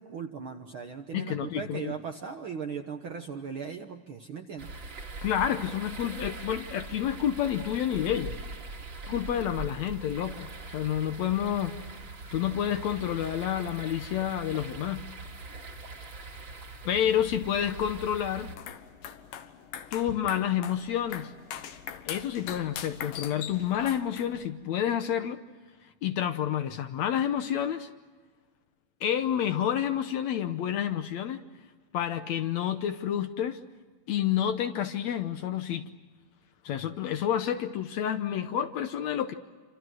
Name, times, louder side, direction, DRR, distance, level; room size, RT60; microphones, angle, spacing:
voice 1, 0.0-4.7, right 6 dB, 55° right, 5 dB, 1.5 m, -38 dB
voice 2, 1.1-1.9 5.2-8.4 9.1-11.8 12.3-15.0 16.9-18.5 19.9-21.3 22.0-25.4 25.8-27.9 29.0-31.4 31.9-33.6 34.1-35.9 36.6-39.3, left 10 dB, 70° left, 9 dB, 1.9 m, -29 dB
sound 1, 4.6-18.6, right 3 dB, 40° right, 2.8 m, -42 dB
sound 2, 18.5-24.5, left 9 dB, 85° left, 2.9 m, -41 dB
28.5 x 26.5 x 6.3 m, 1.4 s
omnidirectional pair, 3.8 m